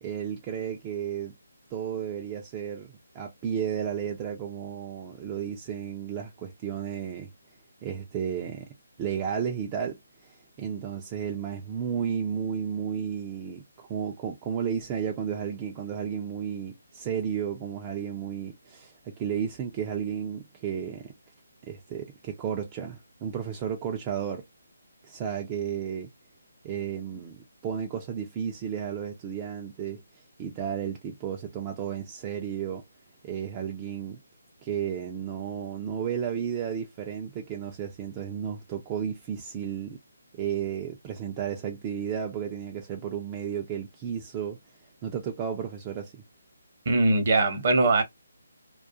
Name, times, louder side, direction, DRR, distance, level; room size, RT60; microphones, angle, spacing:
voice 1, 0.0-1.3 1.7-7.3 7.8-8.7 9.0-21.1 21.7-24.4 25.0-26.1 26.6-32.8 33.2-34.2 34.6-40.0 40.3-44.6 45.0-46.2, right 8 dB, 20° right, 0.4 m, -33 dB
voice 2, 46.9-48.0, right 2 dB, 45° right, 0.8 m, -21 dB
2.3 x 2.3 x 2.4 m
figure-of-eight pair, 145°, 0 cm